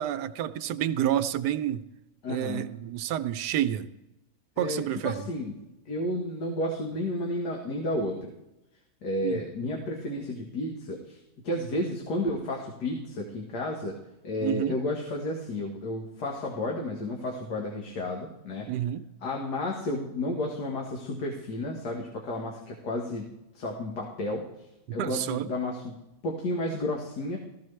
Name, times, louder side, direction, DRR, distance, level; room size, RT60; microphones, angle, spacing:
voice 1, 0.0-1.9 2.3-3.9 4.6-5.3 9.2-9.4 14.4-14.8 18.7-19.1 25.0-25.5, right 11 dB, 80° right, 1.2 m, -29 dB
voice 2, 2.2-2.7 4.6-5.5 5.9-8.3 9.0-11.2 11.4-13.9 14.2-18.7 19.2-23.3 23.5-24.4 24.9-26.0 26.2-27.4, left 1 dB, 75° left, 1.9 m, -32 dB
15.0 x 14.0 x 3.2 m
omnidirectional pair, 1.8 m